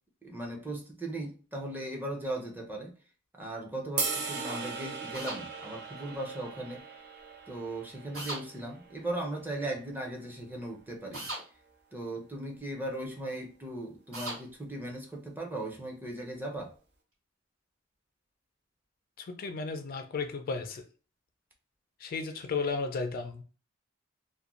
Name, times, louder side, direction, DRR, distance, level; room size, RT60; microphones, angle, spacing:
voice 1, 0.2-2.9 3.3-6.8 7.5-11.2 11.9-16.7, right 1 dB, 10° right, 0.5 m, -38 dB
sound 1, 4.0-10.2, right 4 dB, 55° right, 0.6 m, -39 dB
sound 2, 5.1-5.4 8.1-8.4 11.1-11.4 14.1-14.4, right 1 dB, 90° right, 1.5 m, -37 dB
voice 2, 19.2-20.8 22.0-23.4, left 4 dB, 45° left, 0.3 m, -34 dB
2.5 x 2.1 x 2.9 m
head